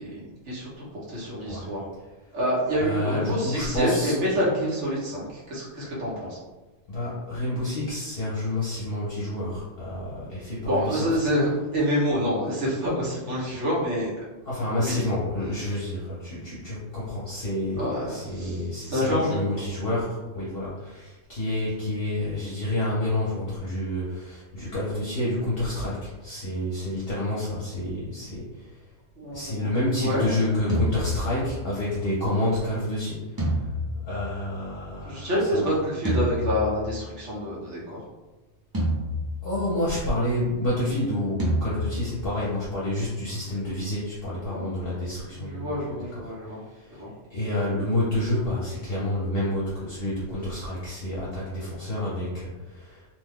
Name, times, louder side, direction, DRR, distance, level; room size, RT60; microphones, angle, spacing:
voice 1, 0.0-1.8 2.3-6.4 10.6-14.1 14.7-15.0 17.8-19.6 29.2-29.7 30.0-30.6 35.0-38.0 44.5-44.7 45.3-46.6 46.9-47.1, equal, 80° right, -6 dB, 1.3 m, -27 dB
voice 2, 2.8-4.1 5.8-5.9 6.9-11.2 14.4-28.8 29.3-33.7 34.1-35.8 39.4-47.0 47.3-53.1, left 1 dB, 60° left, -8 dB, 0.9 m, -29 dB
sound 1, 30.7-31.9 33.4-34.9 36.0-37.2 38.7-40.0 41.4-42.5, equal, 25° right, 0.6 m, -29 dB
2.9 x 2.2 x 3.4 m, 1.1 s
omnidirectional pair, 1.2 m